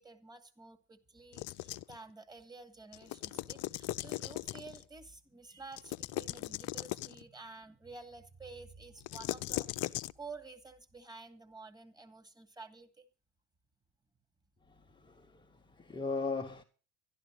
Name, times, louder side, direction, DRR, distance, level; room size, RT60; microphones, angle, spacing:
voice 1, 0.0-13.1, right 3 dB, 10° right, 2.4 m, -51 dB
sound 1, 1.3-2.0 2.9-4.8 5.7-7.2 9.0-10.1, left 16 dB, 45° left, 0.6 m, -39 dB
voice 2, 14.7-16.6, left 4 dB, 15° left, 1.1 m, -39 dB
12.0 x 11.5 x 6.4 m
figure-of-eight pair, 70°, 34 cm